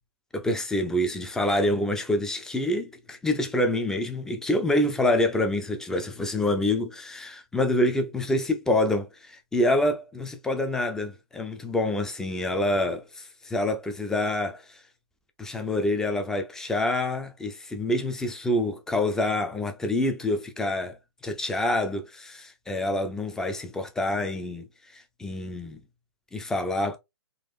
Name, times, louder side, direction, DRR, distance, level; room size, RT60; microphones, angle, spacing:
voice 1, 0.3-14.8 15.4-25.8 26.3-27.0, left 1 dB, 5° left, 0.4 m, -27 dB
3.7 x 2.4 x 2.5 m
hypercardioid pair, 135°, 14 cm